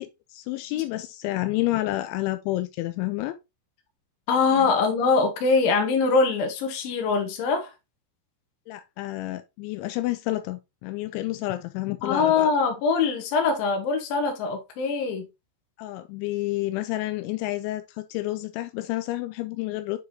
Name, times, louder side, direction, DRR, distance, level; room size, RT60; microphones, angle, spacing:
voice 1, 0.0-3.4 4.5-4.7 8.7-12.5 15.8-20.0, left 17 dB, 90° left, 2.6 m, -30 dB
voice 2, 4.3-7.7 12.0-15.3, left 4 dB, 65° left, 2.5 m, -23 dB
7.8 x 4.7 x 2.9 m
omnidirectional pair, 5.9 m